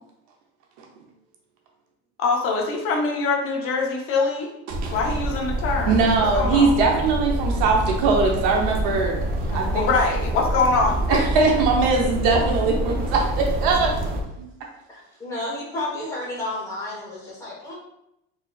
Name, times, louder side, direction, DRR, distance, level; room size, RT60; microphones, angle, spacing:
voice 1, 2.2-4.5 4.9-6.0 6.3-6.8 9.5-11.0, left 4 dB, 45° left, 0 dB, 0.8 m, -23 dB
sound 1, 4.7-14.2, right 1 dB, 30° right, 0.4 m, -26 dB
voice 2, 5.9-9.2 9.5-9.9 11.1-14.0 14.4-14.5, right 4 dB, 85° right, 1 dB, 0.8 m, -21 dB
voice 3, 14.9-17.7, left 2 dB, 10° left, -6 dB, 1.1 m, -31 dB
4.1 x 3.2 x 2.3 m, 0.82 s
cardioid pair, 175°, 31 cm